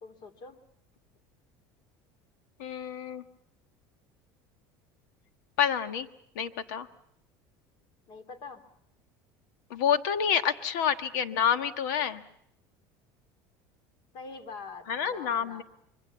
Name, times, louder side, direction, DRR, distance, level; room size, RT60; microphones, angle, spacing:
voice 1, 0.0-0.6 8.1-8.6 14.1-15.6, left 4 dB, 50° left, 9 dB, 3.2 m, -44 dB
voice 2, 2.6-3.2 5.6-6.1 6.3-6.9 9.7-12.2 14.9-15.6, left 8 dB, 90° left, 10 dB, 1.4 m, -28 dB
26.0 x 24.0 x 7.0 m, 0.75 s
cardioid pair, 140°, 10 cm